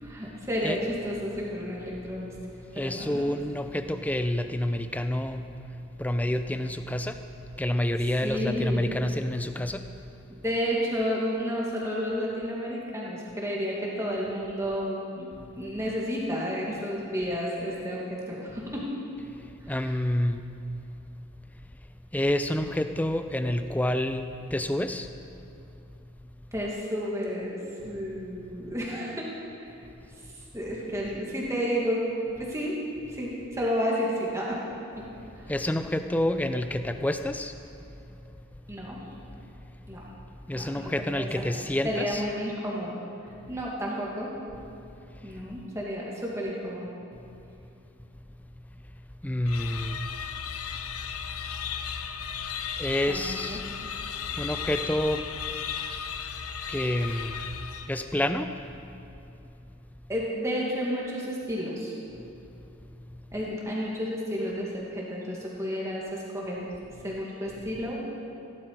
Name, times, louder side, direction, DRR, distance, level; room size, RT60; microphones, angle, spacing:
voice 1, 0.0-2.3 2.7-3.3 8.2-8.9 10.3-19.0 19.8-19.9 26.5-29.3 29.6-29.7 30.5-32.0 32.3-32.8 33.1-34.6 35.0-35.1 35.4-35.5 38.7-39.0 39.9-40.0 40.5-41.3 41.8-43.0 43.5-44.3 45.2-46.9 53.1-54.0 60.1-61.9 63.3-66.7 67.0-68.0, equal, 15° right, -4 dB, 2.2 m, -31 dB
voice 2, 2.7-5.5 6.0-7.2 7.6-9.9 19.7-20.4 22.1-24.3 24.5-25.1 35.5-37.5 40.5-42.2 49.2-50.0 52.8-53.6 54.4-55.3 56.7-57.4 57.9-58.6, left 1 dB, 5° left, 8 dB, 0.4 m, -28 dB
sound 1, 49.5-58.2, left 7 dB, 85° left, 0.7 m, -35 dB
16.5 x 11.5 x 4.8 m, 2.7 s
head